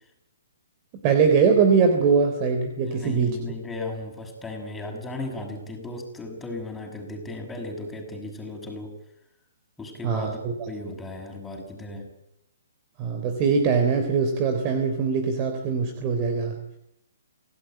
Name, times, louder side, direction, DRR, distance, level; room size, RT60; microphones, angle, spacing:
voice 1, 1.0-3.4 10.0-10.5 13.0-16.8, right 5 dB, 30° right, 6 dB, 3.7 m, -22 dB
voice 2, 2.8-9.0 9.8-12.1, left 2 dB, 10° left, 2 dB, 6.7 m, -36 dB
27.0 x 17.5 x 9.2 m, 0.83 s
hypercardioid pair, 140°, 0 cm